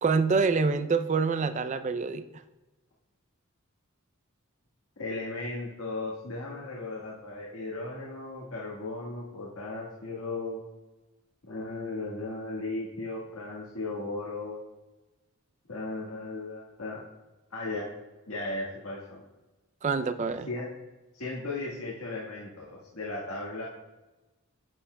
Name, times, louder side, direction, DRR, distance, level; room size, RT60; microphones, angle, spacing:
voice 1, 0.0-2.3 19.8-20.5, right 4 dB, 35° right, 11 dB, 0.4 m, -26 dB
voice 2, 5.0-10.6 11.5-14.6 15.7-17.0 17.5-17.9 18.3-19.2 20.5-20.7 21.1-23.6, left 2 dB, 75° left, -5 dB, 1.5 m, -36 dB
9.8 x 8.2 x 2.2 m, 1.1 s
head